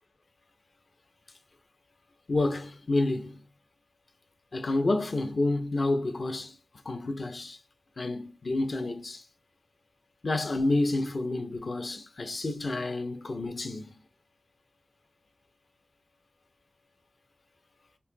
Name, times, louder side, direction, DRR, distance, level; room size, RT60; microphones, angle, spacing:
voice 1, 2.3-3.4 4.5-6.5 6.8-7.6 8.0-9.2 10.2-13.9, left 2 dB, 60° left, 0.9 m, -29 dB
5.6 x 2.6 x 2.2 m
wide cardioid pair, 85°, 0 cm